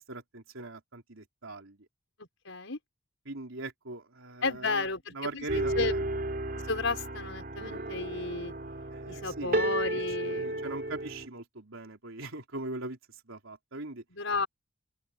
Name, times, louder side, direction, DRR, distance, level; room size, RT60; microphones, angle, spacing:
voice 1, 0.0-1.8 3.3-4.9 5.2-6.0 8.9-9.7 10.2-13.0 13.3-14.0, right 2 dB, 85° right, 3.7 m, -41 dB
voice 2, 2.4-2.8 4.4-6.0 6.6-8.5 9.1-10.7 14.1-14.5, left 3 dB, 70° left, 5.5 m, -33 dB
sound 1, 5.5-11.3, right 1 dB, 45° right, 3.5 m, -33 dB
open air
head